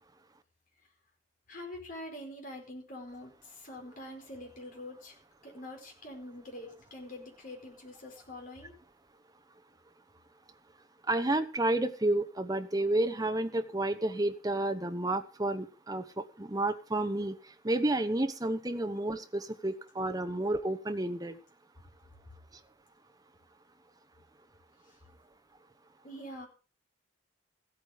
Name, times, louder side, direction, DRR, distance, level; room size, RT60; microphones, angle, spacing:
voice 1, 1.5-5.2 5.4-8.7 24.9-25.0 26.0-26.5, left 1 dB, 45° left, 1 dB, 4.7 m, -45 dB
voice 2, 11.1-17.4 17.6-21.4, right 2 dB, 20° right, 9 dB, 1.1 m, -30 dB
15.5 x 8.9 x 5.1 m, 0.37 s
head